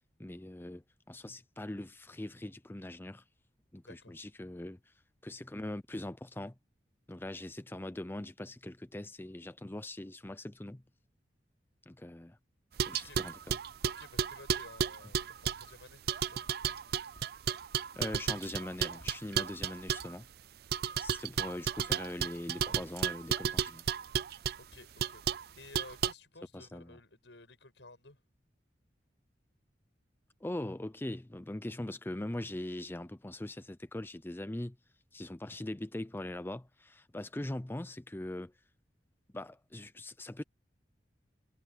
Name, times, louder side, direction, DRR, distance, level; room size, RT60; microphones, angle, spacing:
voice 1, 0.2-3.2 3.7-4.9 5.2-6.5 7.1-10.8 11.9-12.4 12.9-13.6 18.0-20.3 21.0-23.8 26.5-27.0 30.4-34.8 35.1-38.5 39.3-40.4, left 1 dB, 10° left, 0.5 m, -41 dB
voice 2, 3.8-4.2 12.9-13.2 13.8-16.5 24.3-28.2, left 2 dB, 85° left, 7.2 m, -54 dB
sound 1, 12.8-15.7 16.1-20.1 20.7-24.6 25.0-25.4 25.7-26.1, right 8 dB, 60° right, 0.4 m, -33 dB
sound 2, 15.5-15.9 17.0-17.5 19.0-19.4 20.0-20.4 24.4-24.5 24.7-25.0, equal, 55° left, 4.1 m, -62 dB
head